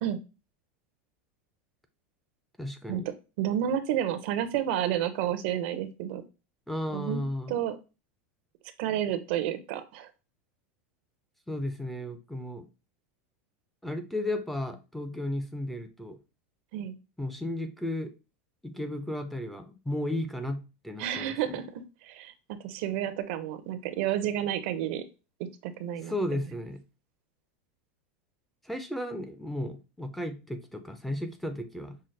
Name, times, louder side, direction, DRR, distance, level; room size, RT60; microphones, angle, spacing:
voice 1, 2.6-3.1 6.7-7.5 11.5-12.7 13.8-16.2 17.2-18.1 18.6-21.6 26.0-26.8 28.6-32.0, left 1 dB, 5° left, 5 dB, 0.5 m, -34 dB
voice 2, 3.4-6.2 6.9-7.2 7.5-7.8 8.8-10.1 16.7-16.9 21.0-22.3 22.6-25.0 25.4-26.4, right 10 dB, 65° right, 11 dB, 0.6 m, -30 dB
5.5 x 2.0 x 3.2 m, 0.29 s
supercardioid pair, 130°, 7 cm